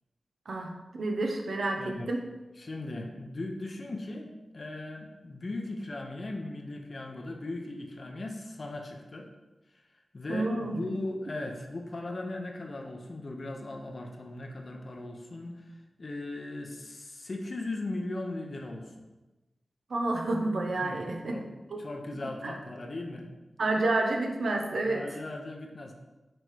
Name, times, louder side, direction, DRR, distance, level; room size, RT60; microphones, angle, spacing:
voice 1, 0.5-2.2 10.3-10.8 19.9-21.4 21.7-21.8 22.4-22.5 23.6-25.0, right 2 dB, 80° right, 2 dB, 0.8 m, -29 dB
voice 2, 1.8-2.1 2.5-9.3 9.7-9.8 10.1-18.9 20.7-21.0 21.3-21.5 21.8-23.3 24.8-25.9, left 2 dB, 55° left, 2 dB, 0.9 m, -38 dB
6.1 x 3.3 x 4.6 m, 1.1 s
cardioid pair, 55°, 0 cm